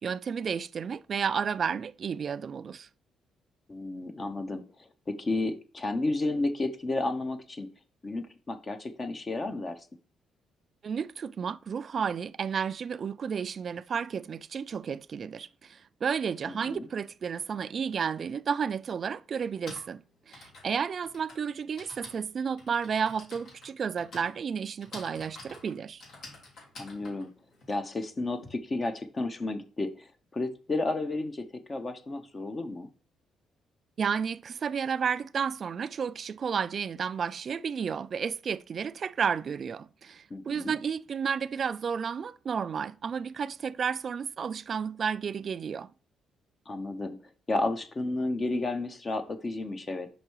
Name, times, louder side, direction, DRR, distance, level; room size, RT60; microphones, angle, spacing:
voice 1, 0.0-2.9 10.8-26.0 34.0-45.9, right 6 dB, 50° right, 0.3 m, -32 dB
voice 2, 3.7-4.6 5.1-7.7 8.0-9.9 16.5-16.9 26.8-27.3 27.7-32.9 40.3-40.7 46.7-47.2 47.5-50.1, left 2 dB, 30° left, 0.8 m, -32 dB
Typing, 18.3-18.4 19.4-28.5, left 2 dB, 70° left, 3.3 m, -49 dB
5.5 x 4.9 x 4.6 m
cardioid pair, 90°, 0 cm